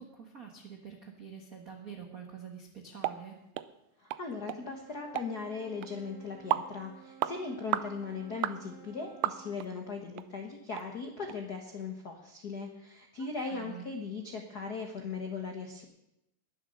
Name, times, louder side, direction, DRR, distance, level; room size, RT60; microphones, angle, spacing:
voice 1, 0.0-3.4 13.4-13.8, right 7 dB, 65° right, 2 dB, 0.8 m, -46 dB
sound 1, 3.0-3.2 3.5-3.7 4.1-4.2 4.5-4.6 5.2-5.3 5.8-5.9 6.5-6.7 7.2-7.4 7.7-7.9 8.4-8.6 9.2-9.7 10.2-10.3 10.7-10.9 11.3-11.4, right 14 dB, 90° right, 1.6 m, -31 dB
voice 2, 4.0-15.8, left 4 dB, 65° left, 3 dB, 0.9 m, -39 dB
Wind instrument woodwind instrument, 4.6-9.6, right 7 dB, 35° right, 3.1 m, -53 dB
21.0 x 7.4 x 6.5 m, 0.87 s
omnidirectional pair, 4.0 m